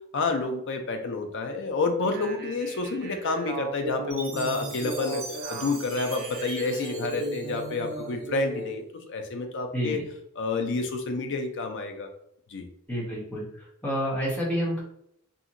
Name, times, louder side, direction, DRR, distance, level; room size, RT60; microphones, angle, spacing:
voice 1, 0.1-5.2 5.5-10.0 10.4-12.1 12.5-12.7, left 3 dB, 55° left, 5 dB, 0.5 m, -29 dB
sound 1, 2.0-8.7, right 2 dB, 45° right, 0.4 m, -37 dB
Chime, 4.1-8.4, right 3 dB, 75° right, 1.0 m, -41 dB
voice 2, 12.9-14.8, equal, 5° left, -7 dB, 1.0 m, -29 dB
2.8 x 2.6 x 2.5 m, 0.74 s
head